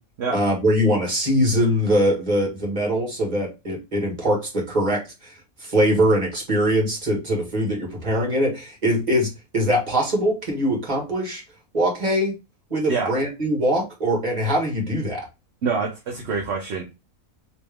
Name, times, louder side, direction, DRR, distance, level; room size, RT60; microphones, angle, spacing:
voice 1, 0.3-5.3 5.6-11.4 11.7-12.3 12.7-15.3, equal, 30° right, -1 dB, 1.6 m, -22 dB
voice 2, 15.6-16.8, right 5 dB, 55° right, 0 dB, 0.8 m, -25 dB
3.3 x 3.0 x 3.3 m, 0.26 s
omnidirectional pair, 1.7 m